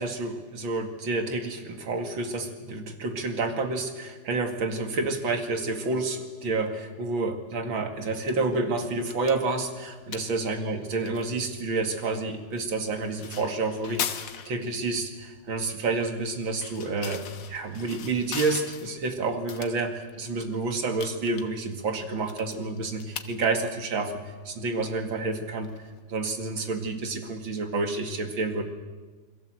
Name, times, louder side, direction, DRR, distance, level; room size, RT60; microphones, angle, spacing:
voice 1, 0.0-25.7 26.1-28.6, right 3 dB, 75° right, 5 dB, 3.0 m, -29 dB
sound 1, 8.0-26.4, left 8 dB, 90° left, 2.1 m, -42 dB
28.0 x 22.0 x 7.8 m, 1.4 s
omnidirectional pair, 2.2 m